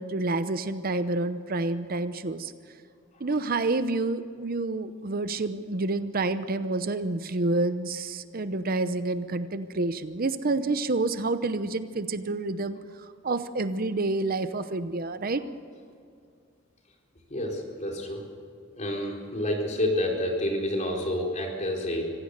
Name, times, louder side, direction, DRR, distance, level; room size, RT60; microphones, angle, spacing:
voice 1, 0.0-2.5 3.2-15.4, right 2 dB, 50° right, 11 dB, 0.8 m, -28 dB
voice 2, 17.3-18.2 18.7-22.0, left 1 dB, 40° left, 0 dB, 4.4 m, -29 dB
25.0 x 16.0 x 6.6 m, 2.3 s
head